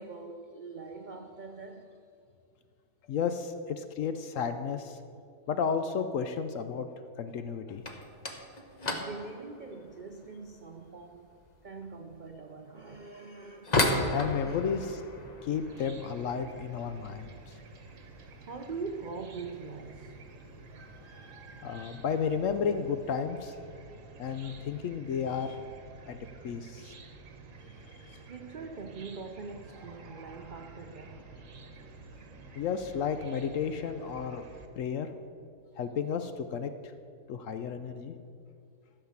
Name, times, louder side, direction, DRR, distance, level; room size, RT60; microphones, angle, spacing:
voice 1, 0.0-2.0 8.9-11.3 11.6-13.8 14.4-14.6 18.3-20.2 28.1-31.3, right 4 dB, 75° right, 0.4 m, -43 dB
voice 2, 3.1-5.0 5.5-6.9 7.2-7.8 14.1-15.0 15.4-17.5 21.6-23.5 24.2-25.6 26.1-26.2 26.4-26.9 27.8-28.2 32.6-34.4 34.8-35.1 35.8-36.7 37.3-38.1, left 6 dB, 65° left, 0.8 m, -32 dB
sound 1, 7.7-18.5 18.8-19.4 19.6-19.9 20.3-20.4 21.1-21.2 22.1-22.3 22.6-23.1, left 2 dB, 30° left, 0.9 m, -36 dB
Chicken rooster / Cricket, 15.5-34.7, right 4 dB, 55° right, 1.3 m, -50 dB
13.5 x 5.9 x 7.1 m
omnidirectional pair, 1.7 m